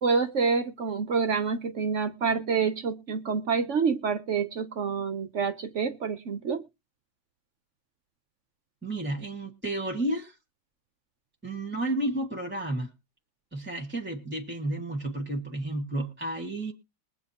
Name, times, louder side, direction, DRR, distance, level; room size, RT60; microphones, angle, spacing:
voice 1, 0.0-6.6, right 5 dB, 55° right, 9 dB, 0.9 m, -27 dB
voice 2, 8.8-10.4 11.4-12.9 13.5-16.7, right 1 dB, 5° right, 2 dB, 1.4 m, -31 dB
22.0 x 8.6 x 2.8 m, 0.28 s
omnidirectional pair, 1.9 m